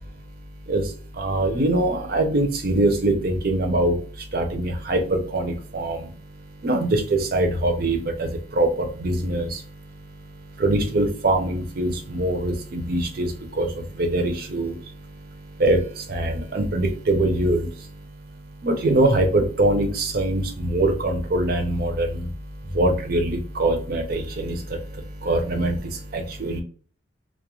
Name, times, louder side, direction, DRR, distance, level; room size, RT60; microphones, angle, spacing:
voice 1, 0.7-26.6, right 1 dB, 50° right, 5 dB, 0.5 m, -24 dB
2.3 x 2.2 x 3.0 m, 0.42 s
head